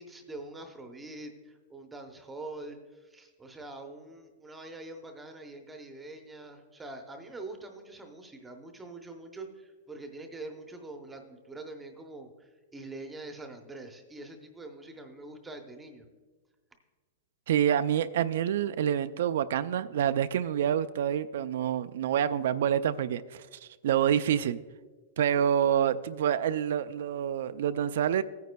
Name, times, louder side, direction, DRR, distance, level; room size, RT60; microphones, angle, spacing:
voice 1, 0.0-16.1, right 2 dB, 10° right, 4 dB, 0.7 m, -44 dB
voice 2, 17.5-24.6 25.2-28.2, right 9 dB, 65° right, 12 dB, 0.3 m, -27 dB
16.5 x 9.3 x 2.2 m, 1.4 s
supercardioid pair, 165°, 0 cm